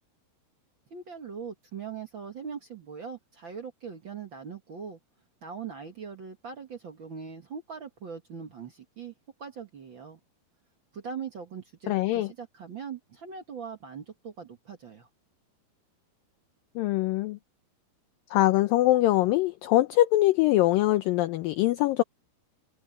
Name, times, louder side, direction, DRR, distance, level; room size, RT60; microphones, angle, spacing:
voice 1, 0.9-5.0 5.4-9.1 9.4-10.2 10.9-15.1, right 6 dB, 65° right, 1.2 m, -41 dB
voice 2, 11.9-12.3 16.8-17.4 18.3-22.0, left 16 dB, 80° left, 2.1 m, -23 dB
omnidirectional pair, 4.8 m